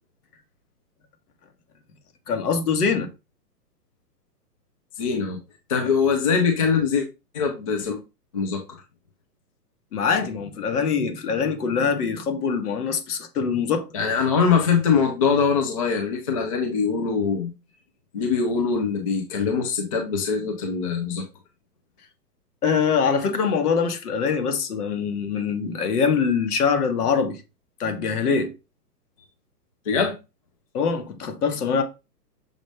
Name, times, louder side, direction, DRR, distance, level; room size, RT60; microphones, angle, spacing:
voice 1, 2.3-3.1 9.9-13.9 22.6-27.4 27.8-28.5 30.7-31.8, left 6 dB, 65° left, 1.4 m, -23 dB
voice 2, 5.0-5.4 5.7-7.1 7.3-8.0 8.3-8.6 13.9-17.5 18.1-21.3 29.9-30.1, left 5 dB, 25° left, 0.4 m, -22 dB
6.3 x 2.5 x 3.2 m
hypercardioid pair, 140°, 49 cm